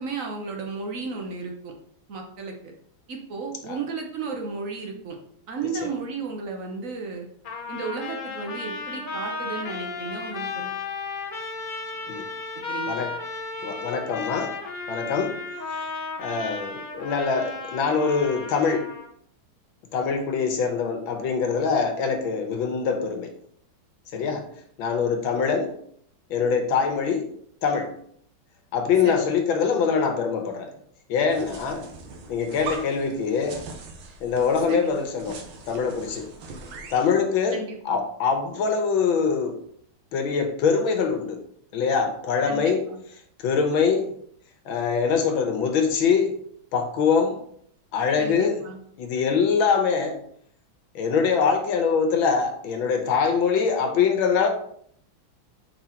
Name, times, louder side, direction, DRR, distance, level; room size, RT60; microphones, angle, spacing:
voice 1, 0.0-1.7 2.1-2.5 3.1-5.2 5.5-7.3 7.7-10.8 12.7-13.0 29.0-29.3 34.7-34.9 37.5-38.0 42.5-43.0 48.2-48.8, right 4 dB, 50° right, 2 dB, 1.1 m, -34 dB
Trumpet, 7.4-19.1, left 4 dB, 45° left, 0.6 m, -34 dB
voice 2, 13.6-14.6 14.9-15.4 16.2-18.9 19.9-23.3 24.1-24.4 24.8-25.7 26.3-27.3 27.6-27.9 28.7-30.7 31.1-31.9 32.3-33.6 34.2-35.4 35.7-36.3 36.9-39.6 40.1-41.4 41.7-42.8 43.4-44.1 44.6-46.3 46.7-47.4 47.9-48.6 49.0-50.2 50.9-54.5, left 5 dB, 75° left, 5 dB, 1.7 m, -23 dB
sound 1, 31.3-37.1, right 4 dB, 75° right, 1.7 m, -41 dB
5.4 x 4.0 x 4.4 m, 0.64 s
omnidirectional pair, 2.2 m